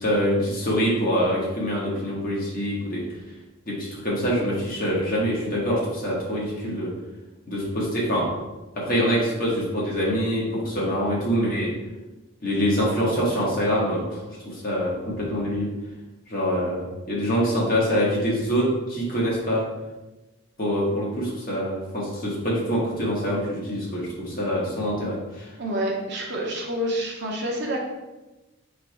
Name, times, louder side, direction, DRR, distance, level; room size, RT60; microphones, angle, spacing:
voice 1, 0.0-3.0 3.7-6.9 7.5-8.3 8.8-11.7 12.4-15.7 16.3-19.6 20.6-25.5, equal, 40° left, -4 dB, 1.2 m, -25 dB
voice 2, 25.6-27.8, right 1 dB, 50° right, -1 dB, 0.8 m, -28 dB
3.2 x 3.2 x 4.5 m, 1.1 s
head